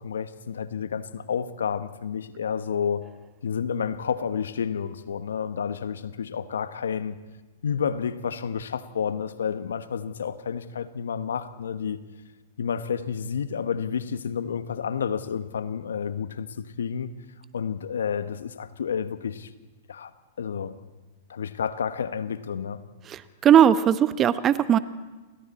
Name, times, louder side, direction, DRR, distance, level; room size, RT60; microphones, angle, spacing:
voice 1, 0.0-3.0 3.4-7.2 7.6-12.0 12.6-17.1 17.5-19.5 19.9-20.1 20.4-20.8 21.3-22.8, left 7 dB, 80° left, 1.2 m, -30 dB
voice 2, 23.1-24.8, right 9 dB, 30° right, 1.1 m, -19 dB
28.5 x 24.0 x 4.3 m
hypercardioid pair, 110°, 0 cm